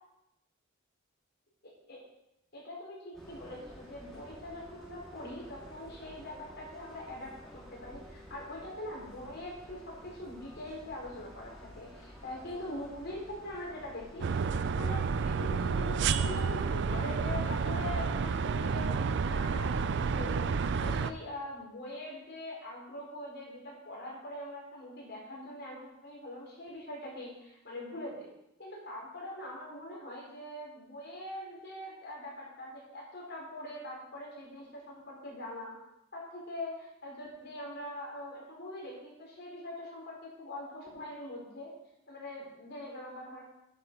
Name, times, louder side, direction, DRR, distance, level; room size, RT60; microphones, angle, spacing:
voice 1, 2.5-14.3 14.6-18.9 19.3-28.3 28.6-35.8 36.1-41.7 42.1-43.4, left 1 dB, 50° left, -3 dB, 3.9 m, -43 dB
sound 1, 3.1-14.6, equal, ahead, 2.4 m, -52 dB
sound 2, 14.2-21.1, right 5 dB, 55° right, 0.4 m, -30 dB
9.8 x 7.0 x 5.2 m, 0.86 s
head